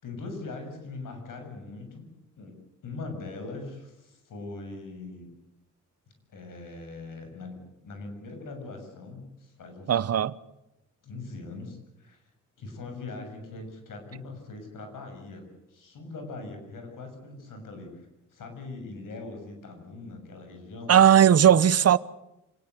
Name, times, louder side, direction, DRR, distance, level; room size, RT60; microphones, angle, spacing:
voice 1, 0.0-2.1 2.4-2.5 2.8-5.3 6.3-9.9 11.0-12.2 12.6-21.0, left 3 dB, 85° left, 7.0 m, -41 dB
voice 2, 9.9-10.3 20.9-22.0, right 9 dB, 50° right, 0.9 m, -17 dB
27.5 x 19.0 x 8.2 m
wide cardioid pair, 125°, 31 cm